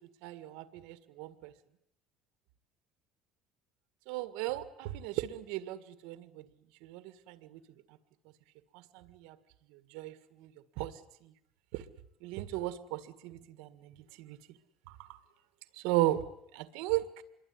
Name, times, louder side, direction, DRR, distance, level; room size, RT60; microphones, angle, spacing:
voice 1, 0.2-1.5 4.1-6.4 6.8-7.6 8.7-9.4 9.7-10.5 10.8-10.9 11.2-11.3 11.7-11.8 12.2-14.4 14.9-15.2 15.7-16.2 16.5-17.2, right 15 dB, 85° right, 12 dB, 1.8 m, -36 dB
26.5 x 22.5 x 9.7 m, 0.77 s
cardioid pair, 130°, 0 cm